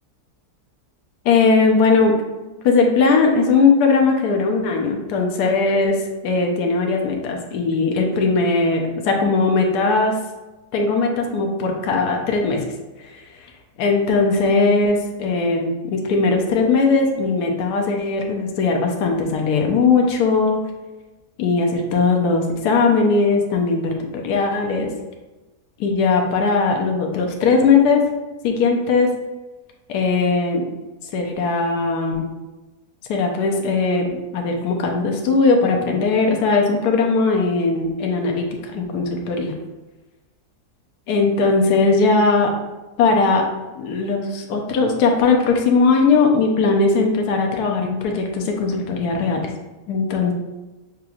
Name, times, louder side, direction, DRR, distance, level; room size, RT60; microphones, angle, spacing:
voice 1, 1.2-2.2 2.6-10.2 10.7-12.7 13.0-13.1 13.8-20.6 21.4-24.9 25.8-28.1 28.4-29.1 29.9-30.7 31.1-32.2 33.1-34.1 34.3-39.5 41.1-42.5 43.0-43.4 43.8-49.4 49.9-50.3, left 4 dB, 75° left, 2 dB, 1.2 m, -19 dB
5.9 x 3.0 x 2.4 m, 1.1 s
omnidirectional pair, 1.7 m